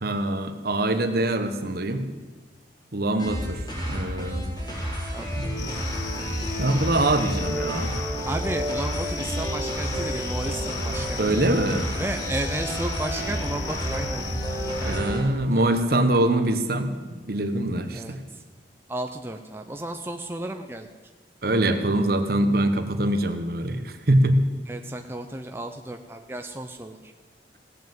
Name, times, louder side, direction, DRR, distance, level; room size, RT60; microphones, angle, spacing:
voice 1, 0.0-2.1 2.9-4.5 5.4-5.7 6.6-7.9 11.2-11.9 14.8-16.9 17.2-18.2 21.4-24.4, right 1 dB, 55° right, 8 dB, 1.1 m, -24 dB
sound 1, 3.2-15.2, equal, 25° left, 4.3 m, -30 dB
sound 2, 5.6-15.0, left 9 dB, 75° left, 0.8 m, -38 dB
voice 2, 8.2-11.4 12.0-14.2 14.8-15.2 15.5-15.8 17.9-18.4 18.9-20.9 24.7-27.1, right 1 dB, 15° right, 4 dB, 0.6 m, -33 dB
16.5 x 7.3 x 7.8 m, 1.3 s
head